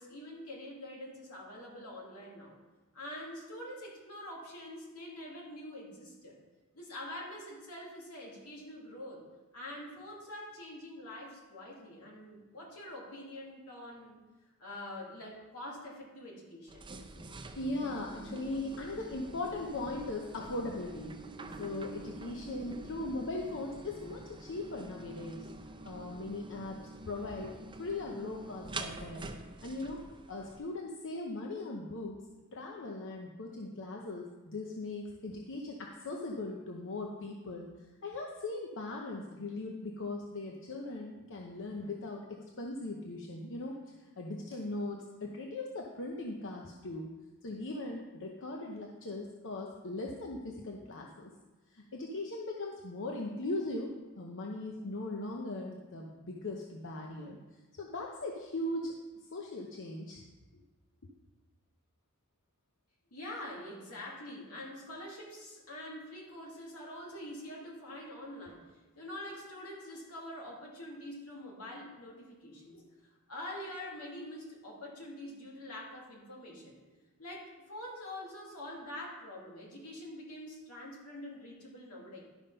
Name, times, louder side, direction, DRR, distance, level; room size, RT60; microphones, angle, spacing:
voice 1, 0.0-2.5 2.9-6.4 6.7-9.2 9.5-14.2 14.6-16.9 63.1-68.6 69.0-72.8 73.3-76.8 77.2-82.2, left 1 dB, 80° left, -3 dB, 2.5 m, -45 dB
sound 1, 16.7-30.6, right 2 dB, 20° right, 0.6 m, -46 dB
voice 2, 17.6-21.2 21.5-25.5 25.8-26.8 27.1-29.4 29.6-30.0 30.3-32.2 32.5-37.7 38.0-47.1 47.4-51.3 51.7-57.4 57.7-59.0 59.3-60.2 61.0-61.1 67.9-68.0 72.7-72.9, left 2 dB, 60° left, 0 dB, 0.8 m, -39 dB
11.5 x 5.4 x 5.5 m, 1.2 s
head